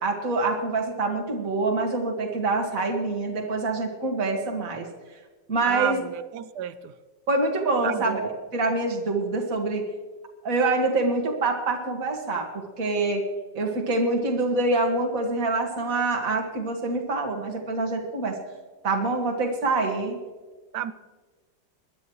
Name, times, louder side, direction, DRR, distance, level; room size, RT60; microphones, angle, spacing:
voice 1, 0.0-4.9 5.5-6.0 7.3-9.8 10.4-12.5 12.8-13.2 13.5-18.4 18.8-20.2, right 3 dB, 50° right, 2 dB, 2.2 m, -25 dB
voice 2, 5.7-6.9 7.8-8.3 20.7-20.9, right 10 dB, 70° right, 13 dB, 1.1 m, -31 dB
22.0 x 12.0 x 3.1 m, 1.3 s
omnidirectional pair, 2.0 m